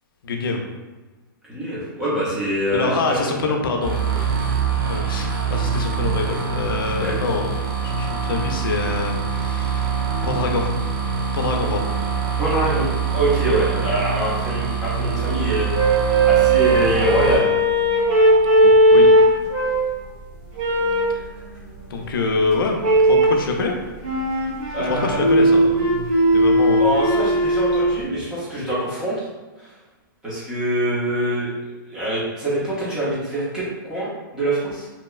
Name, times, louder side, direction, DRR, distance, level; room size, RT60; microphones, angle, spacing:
voice 1, 0.2-0.6 2.7-4.6 4.9-7.5 7.8-10.0 10.2-10.8 11.3-11.9 18.6-19.1 21.1-21.2 21.9-23.8 24.8-26.1 26.3-26.9, left 3 dB, 80° left, 2 dB, 0.4 m, -25 dB
voice 2, 1.5-3.2 3.5-3.6 7.0-7.2 12.4-17.5 24.7-25.2 26.8-29.3 29.6-29.7 30.2-31.5 31.9-34.9, right 1 dB, 5° right, -9 dB, 0.5 m, -24 dB
sound 1, 3.8-17.3, right 6 dB, 85° right, 0.8 m, -24 dB
sound 2, 15.7-20.0 20.6-21.2 22.8-23.4 24.0-28.0, right 1 dB, 40° right, 1.2 m, -17 dB
2.8 x 2.1 x 2.3 m, 1.2 s
hypercardioid pair, 175°, 11 cm